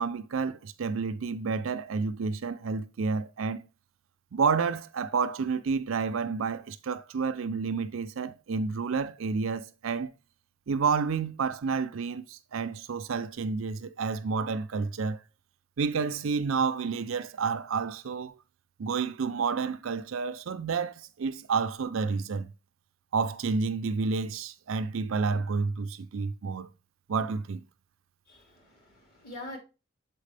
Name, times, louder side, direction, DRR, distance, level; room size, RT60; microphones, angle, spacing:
voice 1, 0.0-3.6 4.3-10.1 10.7-15.2 15.8-18.3 18.8-22.5 23.1-26.7 27.1-27.6, right 5 dB, 70° right, 0.5 m, -30 dB
voice 2, 28.3-29.6, left 2 dB, 45° left, 2.2 m, -44 dB
7.4 x 4.4 x 3.3 m
head